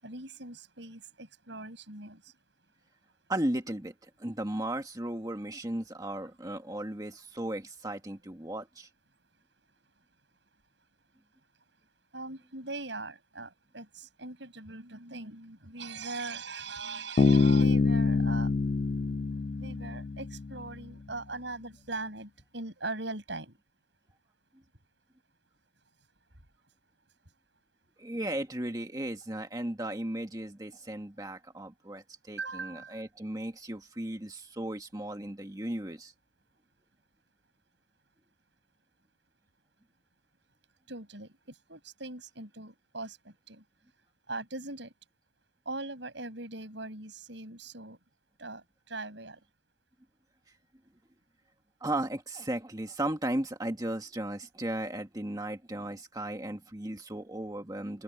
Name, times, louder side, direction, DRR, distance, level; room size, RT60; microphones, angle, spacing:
voice 1, 0.0-2.2 12.1-18.5 19.6-23.5 32.4-33.0 40.9-41.3 41.7-43.6 44.3-44.9 45.7-48.0 48.4-49.4, right 3 dB, 65° right, 7.9 m, -41 dB
voice 2, 3.3-8.9 28.0-36.1 51.8-58.0, right 1 dB, 20° right, 1.7 m, -35 dB
Bass guitar, 17.2-20.7, left 3 dB, 40° left, 0.3 m, -25 dB
open air
head